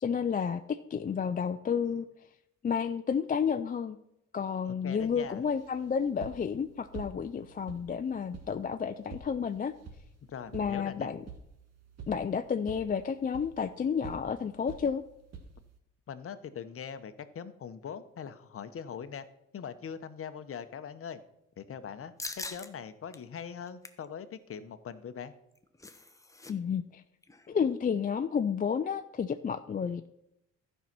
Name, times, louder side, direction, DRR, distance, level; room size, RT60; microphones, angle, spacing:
voice 1, 0.0-2.1 2.6-4.0 4.3-9.7 10.5-11.2 12.1-15.0 26.5-27.0 27.5-30.1, left 6 dB, 30° left, 9 dB, 0.4 m, -31 dB
voice 2, 4.8-5.4 10.3-11.1 16.1-19.2 19.5-21.2 21.6-25.3, left 7 dB, 45° left, 12 dB, 0.9 m, -42 dB
sound 1, 5.0-15.8, right 5 dB, 55° right, 1.7 m, -49 dB
sound 2, 22.2-22.7 23.1-23.2 23.6-24.1 25.3-26.5 26.8-26.9 27.2-27.5, left 2 dB, 10° left, 0.8 m, -42 dB
12.5 x 5.5 x 6.0 m, 0.84 s
cardioid pair, 90°, 30 cm